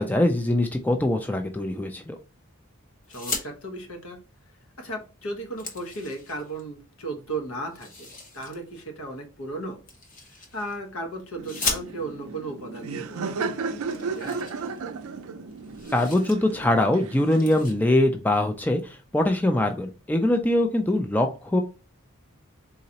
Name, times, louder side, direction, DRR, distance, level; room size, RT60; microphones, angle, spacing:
voice 1, 0.0-2.2 15.9-21.6, left 1 dB, 10° left, 5 dB, 0.3 m, -23 dB
sound 1, 3.0-3.5 4.8-4.9 5.2-6.6 7.7-8.6 9.9-10.8 11.4-12.3 13.2-13.3 13.5-13.6 13.9-15.2 15.5-16.4 16.7-16.9 17.3-17.7, left 3 dB, 35° left, 0.9 m, -36 dB
voice 2, 3.1-4.2 4.8-9.8 10.4-14.4, right 2 dB, 80° left, 2 dB, 1.1 m, -36 dB
Laughter, 11.4-17.7, right 4 dB, 80° right, 0.4 m, -34 dB
4.1 x 3.7 x 2.8 m, 0.33 s
head